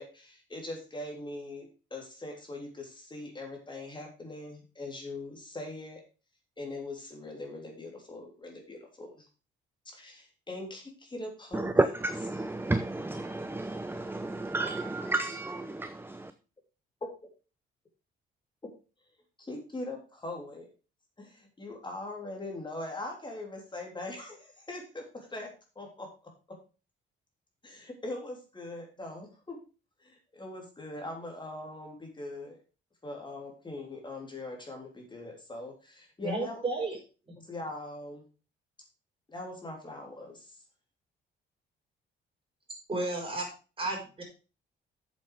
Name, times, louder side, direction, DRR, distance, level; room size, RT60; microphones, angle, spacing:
voice 1, 0.0-6.0 6.6-9.3 9.8-11.8 19.4-20.7 21.2-25.5 25.7-26.1 27.6-29.6 30.0-32.6 33.0-36.6 37.4-38.2 39.3-40.6, left 2 dB, 25° left, 3.4 m, -41 dB
voice 2, 11.5-16.3, right 2 dB, 10° right, 0.7 m, -31 dB
voice 3, 36.2-37.0 37.3-37.4 42.9-43.5 43.8-44.2, right 2 dB, 25° right, 5.8 m, -32 dB
7.9 x 7.5 x 4.9 m
cardioid pair, 90°, 20 cm